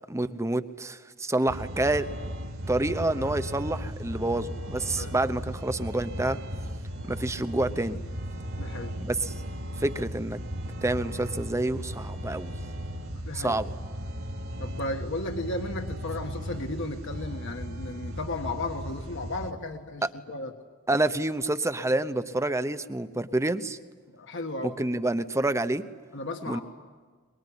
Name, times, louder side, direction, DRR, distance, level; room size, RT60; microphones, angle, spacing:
voice 1, 0.1-2.1 2.7-6.4 7.1-8.0 9.0-9.3 9.8-10.4 10.8-12.5 13.3-13.7 20.0-20.1 20.9-23.8 24.6-25.8 26.5-26.6, right 2 dB, 15° right, 12 dB, 0.9 m, -28 dB
sound 1, 1.5-19.5, equal, 65° right, 2.7 m, -36 dB
voice 2, 8.6-9.0 13.1-13.6 14.6-20.5 24.1-24.7 26.1-26.6, left 2 dB, 60° left, 5 dB, 1.5 m, -34 dB
23.0 x 22.5 x 9.9 m, 1.5 s
head